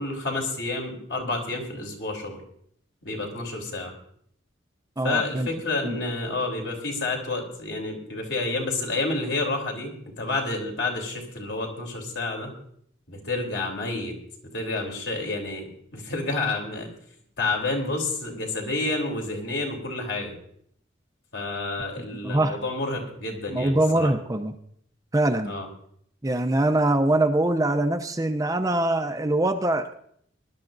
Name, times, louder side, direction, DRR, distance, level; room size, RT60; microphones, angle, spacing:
voice 1, 0.0-2.4 3.0-3.9 5.0-12.5 13.1-14.1 14.5-16.9 17.4-20.4 21.3-24.1 25.4-25.7, left 2 dB, 65° left, 1 dB, 3.4 m, -29 dB
voice 2, 5.0-5.5 5.8-6.0 22.2-22.6 23.5-24.5 25.1-25.5 26.2-29.9, right 1 dB, 15° right, 7 dB, 0.5 m, -23 dB
22.5 x 12.0 x 2.6 m, 0.67 s
head